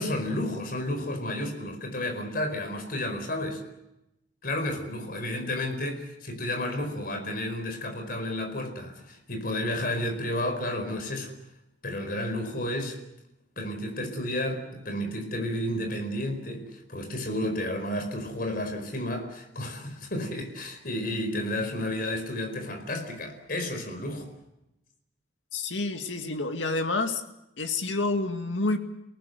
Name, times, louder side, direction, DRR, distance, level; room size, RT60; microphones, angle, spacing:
voice 1, 0.0-3.6 4.4-11.3 11.8-13.0 13.6-24.3, left 1 dB, 50° left, 5 dB, 4.8 m, -31 dB
voice 2, 25.5-27.2 27.6-28.8, left 3 dB, 90° left, 6 dB, 2.3 m, -28 dB
29.0 x 18.5 x 8.0 m, 0.89 s
head